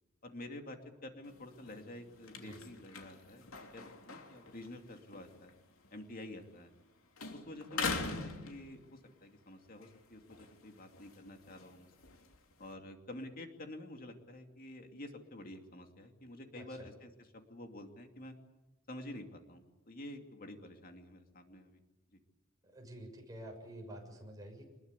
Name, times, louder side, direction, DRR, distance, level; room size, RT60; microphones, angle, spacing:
voice 1, 0.2-3.4 3.7-5.5 5.9-6.7 7.3-11.9 12.6-18.3 18.9-21.8, left 1 dB, 40° left, 4 dB, 2.8 m, -49 dB
sound 1, 1.2-6.9 7.2-9.2 9.7-12.7, left 4 dB, 80° left, 3.1 m, -44 dB
voice 2, 16.6-16.9 22.6-24.7, right 1 dB, 15° right, 1 dB, 6.7 m, -49 dB
25.5 x 21.5 x 8.3 m, 1.0 s
head